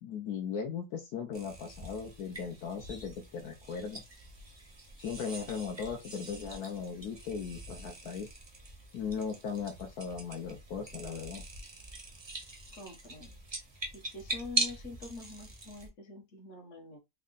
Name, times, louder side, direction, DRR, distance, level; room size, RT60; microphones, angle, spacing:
voice 1, 0.0-4.0 5.0-8.3 8.9-11.4, left 6 dB, 75° left, 1.2 m, -38 dB
sound 1, 1.3-15.9, right 2 dB, 30° right, 0.5 m, -42 dB
voice 2, 12.7-13.4 13.9-17.0, left 3 dB, 50° left, 1.3 m, -45 dB
3.6 x 2.1 x 3.7 m
omnidirectional pair, 1.7 m